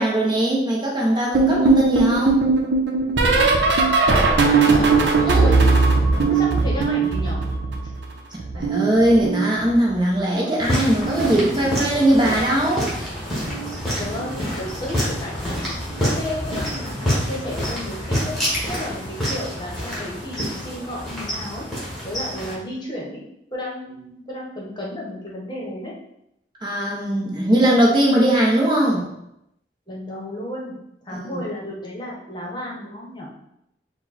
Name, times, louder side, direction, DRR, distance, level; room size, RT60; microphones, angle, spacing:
voice 1, 0.0-2.4 5.2-5.5 8.5-12.9 26.6-29.1 31.1-31.4, right 1 dB, 25° right, -3 dB, 0.8 m, -19 dB
sound 1, 1.3-8.1 8.4-10.0 11.0-11.3 11.6-11.9 13.5-13.7 14.1-14.3 15.9-16.0, right 3 dB, 85° right, 0.7 m, -19 dB
voice 2, 4.1-4.9 5.4-5.6 6.3-7.4 10.4-10.8 14.0-15.6 16.0-18.4 18.7-21.6 22.0-23.2 23.5-25.9 29.9-30.8 31.0-33.3, left 1 dB, 25° left, -4 dB, 1.0 m, -32 dB
sound 2, 10.6-22.5, equal, ahead, 1.4 m, -27 dB
4.4 x 2.2 x 4.1 m, 0.81 s
head